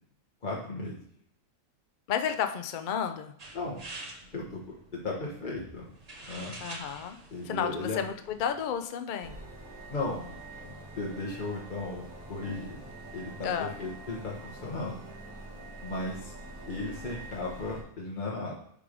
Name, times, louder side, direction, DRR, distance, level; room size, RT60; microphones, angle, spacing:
voice 1, 0.4-1.0 3.5-3.8 4.3-4.6 4.9-5.9 6.2-6.5 7.3-8.0 9.9-10.3 10.6-12.8 13.1-15.0 15.8-16.3 16.7-18.6, left 2 dB, 35° left, -4 dB, 1.2 m, -35 dB
voice 2, 2.1-3.3 6.6-7.2 7.4-9.3 13.4-13.7, left 8 dB, 70° left, 8 dB, 0.4 m, -32 dB
sound 1, 3.4-8.8, right 2 dB, 30° right, 0.8 m, -47 dB
sound 2, 9.2-17.8, right 2 dB, 65° right, 2.1 m, -45 dB
10.0 x 3.5 x 5.0 m, 0.68 s
omnidirectional pair, 1.7 m